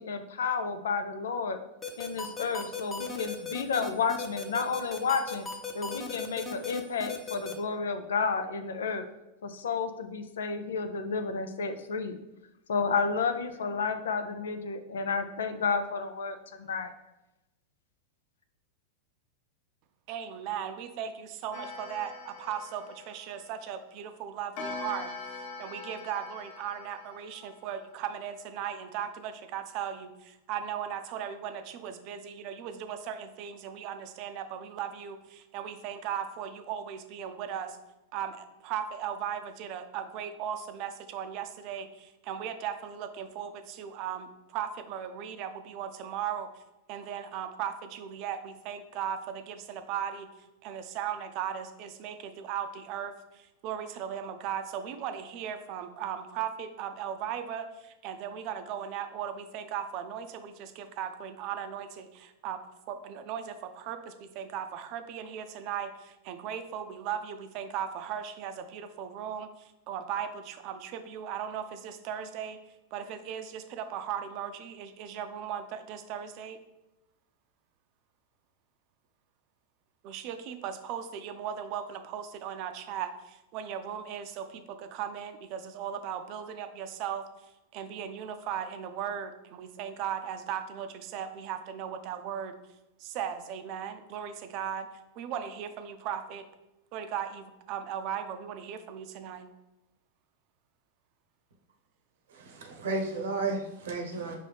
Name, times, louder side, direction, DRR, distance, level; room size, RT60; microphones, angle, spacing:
voice 1, 0.0-1.6 2.0-5.4 5.7-9.0 9.4-12.2 12.7-16.9, left 5 dB, 85° left, 9 dB, 0.5 m, -31 dB
sound 1, 1.8-7.5, left 5 dB, 20° left, 0.8 m, -36 dB
voice 2, 20.1-25.1 25.6-37.8 38.1-46.6 46.9-50.3 50.6-62.6 62.9-72.6 72.9-76.6 80.0-87.3 87.7-92.6 93.0-94.9 95.2-96.4 96.9-99.5, right 9 dB, 50° right, 8 dB, 0.5 m, -37 dB
Clock, 21.5-23.8 24.6-27.9, left 3 dB, 55° left, 0.9 m, -43 dB
voice 3, 102.3-104.4, right 3 dB, 80° right, 2 dB, 0.8 m, -33 dB
5.4 x 2.7 x 3.4 m, 0.96 s
hypercardioid pair, 115°, 0 cm